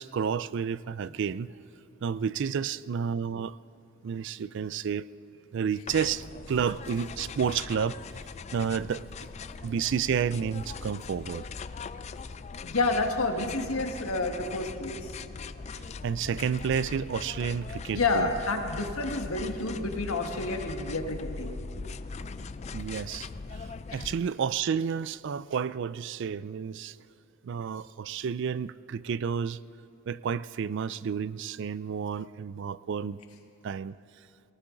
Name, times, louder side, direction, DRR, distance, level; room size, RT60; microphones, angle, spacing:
voice 1, 0.0-1.5 2.0-3.6 4.0-5.1 5.5-8.0 8.5-9.3 9.6-11.5 15.7-18.3 22.7-27.0 27.4-29.6 30.1-33.2 33.6-34.0, right 7 dB, 55° right, 18 dB, 0.3 m, -31 dB
sound 1, 5.9-24.2, left 4 dB, 30° left, 0.3 m, -40 dB
voice 2, 12.6-15.1 17.9-21.6 23.9-24.1, left 3 dB, 90° left, 3 dB, 1.6 m, -29 dB
18.5 x 18.5 x 3.9 m, 2.8 s
head